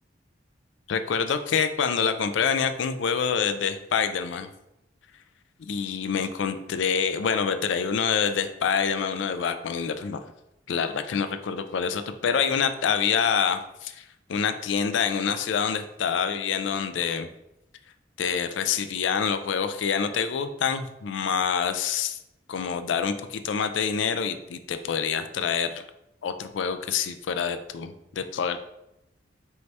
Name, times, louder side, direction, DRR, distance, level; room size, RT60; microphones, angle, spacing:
voice 1, 0.9-4.5 5.6-10.2 10.7-14.0 14.3-17.3 18.2-22.2 22.5-25.8 26.2-28.6, left 6 dB, 85° left, 9 dB, 0.4 m, -26 dB
4.5 x 3.2 x 2.7 m, 0.84 s
head